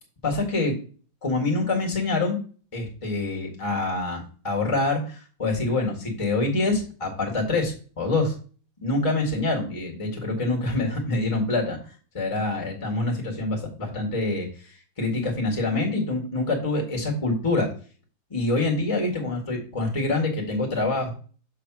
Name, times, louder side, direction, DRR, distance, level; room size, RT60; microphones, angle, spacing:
voice 1, 0.2-0.8 1.2-2.4 2.7-8.3 8.8-11.8 12.1-17.7 18.3-21.1, left 2 dB, 15° left, 0 dB, 1.6 m, -26 dB
6.7 x 3.3 x 6.0 m, 0.40 s
omnidirectional pair, 2.2 m